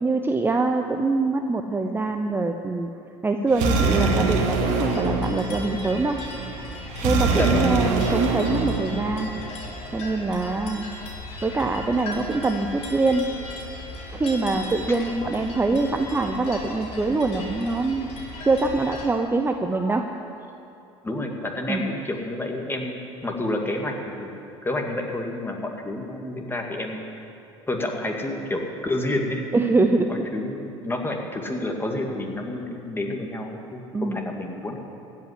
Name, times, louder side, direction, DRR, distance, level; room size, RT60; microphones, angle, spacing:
voice 1, 0.0-2.9 3.2-6.2 7.0-9.3 9.9-10.9 11.4-13.3 14.1-18.1 18.4-20.1 21.7-21.8 29.5-30.3 33.9-34.2, right 3 dB, 15° right, 5 dB, 0.7 m, -24 dB
sound 1, 3.5-9.5, right 3 dB, 60° right, 1.8 m, -24 dB
sound 2, 4.9-19.0, left 2 dB, 45° left, 3.9 m, -37 dB
voice 2, 7.3-7.7 21.0-23.9 24.2-24.3 24.6-27.0 27.7-29.4 30.1-34.8, left 1 dB, 15° left, 2 dB, 2.1 m, -29 dB
16.0 x 5.7 x 9.9 m, 2.7 s
hypercardioid pair, 75°, 15 cm